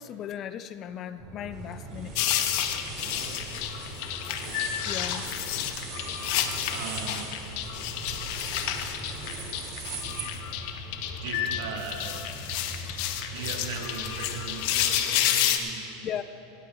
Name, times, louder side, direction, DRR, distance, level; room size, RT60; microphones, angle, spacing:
voice 1, 0.0-2.1 4.9-5.4 16.0-16.2, left 9 dB, 40° left, 12 dB, 0.5 m, -36 dB
sound 1, 1.2-14.9, right 1 dB, 15° right, 2.4 m, -43 dB
sound 2, 1.5-10.3, right 5 dB, 50° right, 2.9 m, -42 dB
sound 3, 2.1-15.6, left 10 dB, 60° left, 0.8 m, -30 dB
voice 2, 6.7-7.3 11.2-12.3 13.3-16.2, right 6 dB, 75° right, 1 dB, 1.8 m, -38 dB
17.5 x 15.5 x 2.4 m, 2.8 s
supercardioid pair, 130°, 0 cm